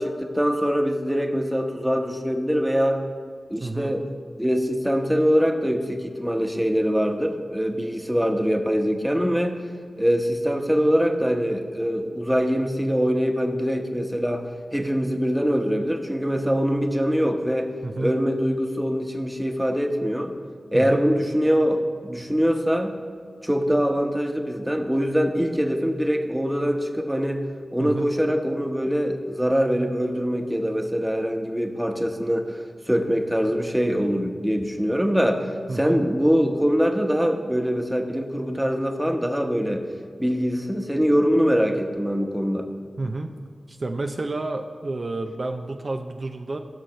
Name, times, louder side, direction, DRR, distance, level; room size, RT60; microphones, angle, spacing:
voice 1, 0.0-3.0 3.5-4.1 4.4-9.6 10.0-17.7 18.0-20.3 20.7-22.9 23.4-27.4 27.7-39.9 40.2-42.7, equal, 5° right, 4 dB, 1.1 m, -23 dB
voice 2, 3.6-3.9 17.8-18.1 20.7-21.1 27.8-28.1 35.7-36.0 43.0-43.3 43.7-46.6, right 2 dB, 55° right, 4 dB, 0.5 m, -30 dB
15.5 x 6.3 x 3.2 m, 2.1 s
cardioid pair, 40°, 0 cm